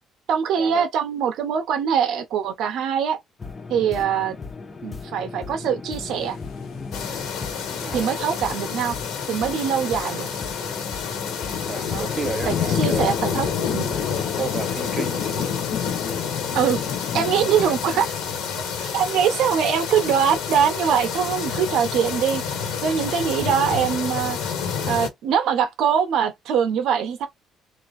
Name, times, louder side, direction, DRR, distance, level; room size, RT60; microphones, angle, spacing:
voice 1, 0.3-3.2 3.7-4.4 4.8-6.4 7.9-9.0 9.3-10.3 11.9-12.0 12.4-13.9 16.5-16.8 17.1-18.1 18.8-22.4 22.8-24.4 24.8-27.3, right 8 dB, 65° right, 0.7 m, -23 dB
sound 1, 3.4-14.0, left 4 dB, 20° left, 0.6 m, -37 dB
sound 2, 6.0-22.3, left 8 dB, 55° left, 0.7 m, -33 dB
sound 3, 6.9-25.1, left 6 dB, 85° left, 1.6 m, -29 dB
voice 2, 7.8-8.2 11.7-13.1 14.4-15.5 17.6-18.1 19.1-19.4, right 4 dB, 25° right, 0.6 m, -33 dB
3.0 x 2.4 x 4.0 m
cardioid pair, 155°, 0 cm